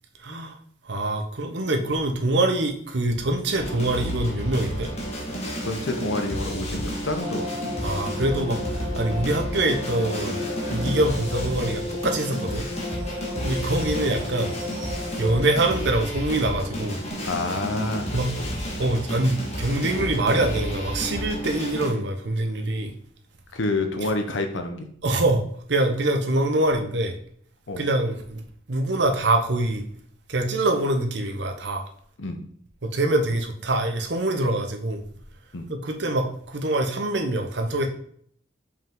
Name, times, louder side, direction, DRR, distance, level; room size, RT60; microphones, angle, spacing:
voice 1, 0.2-0.6 0.8-4.9 7.8-12.7 13.4-14.6 15.2-17.0 18.1-18.3 18.8-22.9 25.0-25.4 25.7-27.2 27.8-28.4 28.7-29.8 30.3-31.9 32.8-35.0 35.7-37.9, right 2 dB, 65° right, 4 dB, 0.9 m, -24 dB
sound 1, 3.6-21.9, equal, 35° left, 1.6 m, -31 dB
voice 2, 5.7-7.5 13.3-13.5 17.3-18.0 18.4-18.5 23.5-24.9 27.7-27.9 32.2-32.4 35.5-35.7, left 2 dB, 80° left, 6 dB, 0.8 m, -28 dB
sound 2, 7.2-15.4, left 2 dB, 45° right, 1.3 m, -34 dB
5.5 x 5.0 x 3.8 m, 0.62 s
head